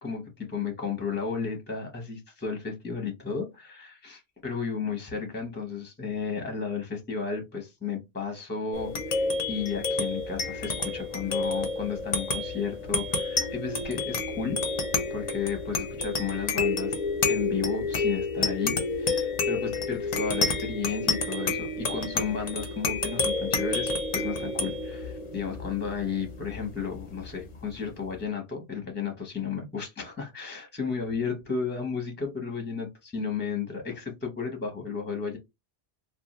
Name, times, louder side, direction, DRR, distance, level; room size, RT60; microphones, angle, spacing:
voice 1, 0.0-14.6 15.1-16.9 17.3-35.4, left 6 dB, 10° left, 0.7 m, -33 dB
sound 1, 8.7-27.6, left 3 dB, 45° left, 0.6 m, -30 dB
2.5 x 2.3 x 2.9 m
omnidirectional pair, 1.1 m